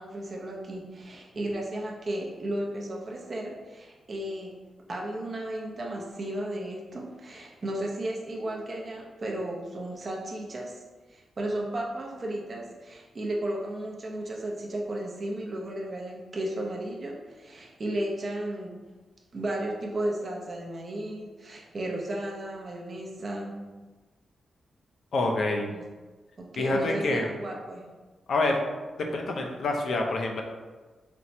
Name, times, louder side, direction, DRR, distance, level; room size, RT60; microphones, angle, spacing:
voice 1, 0.0-4.5 4.9-10.8 11.1-18.8 19.3-23.6 25.7-25.8 26.4-27.8, right 1 dB, 35° right, -2 dB, 0.5 m, -34 dB
voice 2, 25.1-25.7 26.6-27.3 28.3-28.6 29.1-30.4, left 2 dB, 55° left, 2 dB, 0.4 m, -27 dB
4.3 x 2.0 x 2.6 m, 1.3 s
wide cardioid pair, 165°, 0 cm